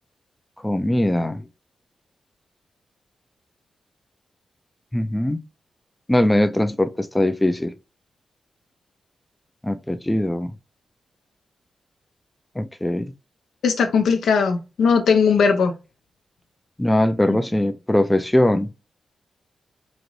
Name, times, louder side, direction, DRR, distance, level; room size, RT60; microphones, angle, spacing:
voice 1, 0.6-1.4 4.9-5.4 6.1-7.7 9.6-10.5 12.6-13.1 16.8-18.7, left 1 dB, 10° left, 0.4 m, -21 dB
voice 2, 13.6-15.7 17.3-17.4, left 5 dB, 85° left, 0.6 m, -18 dB
4.0 x 2.5 x 3.1 m
cardioid pair, 65°, 0 cm